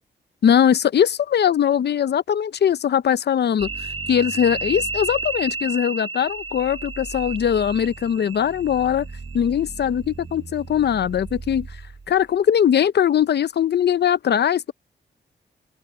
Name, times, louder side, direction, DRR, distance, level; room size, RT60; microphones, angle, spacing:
voice 1, 0.4-3.7 4.1-9.1 9.3-11.7 12.1-14.7, left 9 dB, 65° left, 0.6 m, -20 dB
sound 1, 3.6-12.2, right 3 dB, 30° right, 0.8 m, -33 dB
open air
wide cardioid pair, 130°, 18 cm